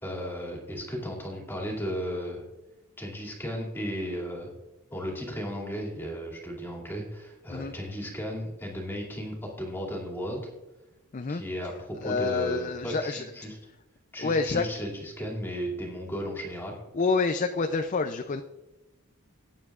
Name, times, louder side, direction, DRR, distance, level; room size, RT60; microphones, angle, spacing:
voice 1, 0.0-2.4 3.0-4.5 4.9-10.4 11.3-13.6 14.1-16.8, equal, 10° left, -2 dB, 2.4 m, -35 dB
voice 2, 12.0-13.2 14.2-14.6 16.9-18.4, left 4 dB, 35° left, 7 dB, 0.4 m, -27 dB
18.5 x 9.4 x 2.4 m, 1.0 s
head